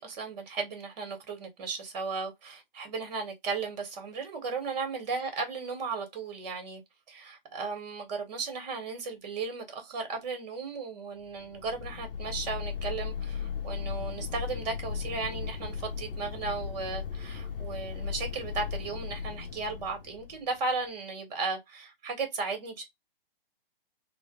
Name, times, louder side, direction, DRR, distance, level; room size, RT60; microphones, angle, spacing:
voice 1, 0.0-6.8 7.1-22.8, right 4 dB, 45° right, 1.5 m, -35 dB
sound 1, 11.4-20.7, left 7 dB, 65° left, 0.7 m, -37 dB
3.1 x 2.3 x 3.0 m
figure-of-eight pair, 135°, 30 cm